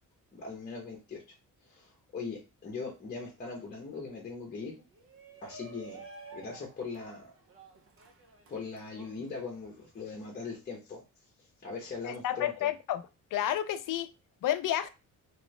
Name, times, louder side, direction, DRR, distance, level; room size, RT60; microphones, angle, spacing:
voice 1, 0.3-1.2 1.7-4.7 5.4-6.0 6.3-7.3 8.5-11.0 11.6-12.7, left 4 dB, 30° left, -1 dB, 0.9 m, -40 dB
Shout, 4.9-10.0, right 3 dB, 45° right, 0.6 m, -51 dB
voice 2, 12.0-13.0 13.3-14.1 14.4-14.9, left 11 dB, 75° left, 11 dB, 0.5 m, -30 dB
3.1 x 3.1 x 3.1 m, 0.27 s
wide cardioid pair, 180°, 32 cm